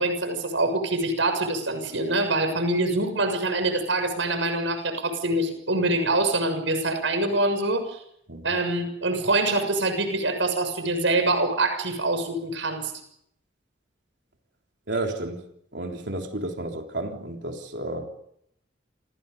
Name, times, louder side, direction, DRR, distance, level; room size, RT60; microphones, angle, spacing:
voice 1, 0.0-8.0 8.4-12.9, right 2 dB, 85° right, 6.8 m, -25 dB
voice 2, 14.9-15.4 15.7-18.1, right 2 dB, 70° right, 3.6 m, -31 dB
28.5 x 28.0 x 5.4 m
head